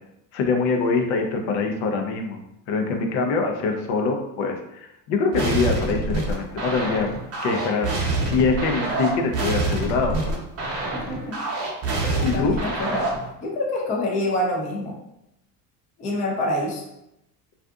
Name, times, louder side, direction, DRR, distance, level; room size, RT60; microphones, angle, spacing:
voice 1, 0.3-2.4 2.7-7.1 7.4-8.0 8.2-10.4 12.2-12.6, left 4 dB, 70° left, 3 dB, 0.6 m, -24 dB
sound 1, 5.3-13.3, right 2 dB, 30° right, 0.7 m, -26 dB
voice 2, 10.9-11.4 11.9-13.1 13.4-14.9 16.0-16.8, left 1 dB, 20° left, -1 dB, 0.3 m, -27 dB
2.5 x 2.5 x 2.3 m, 0.86 s
supercardioid pair, 110°, 47 cm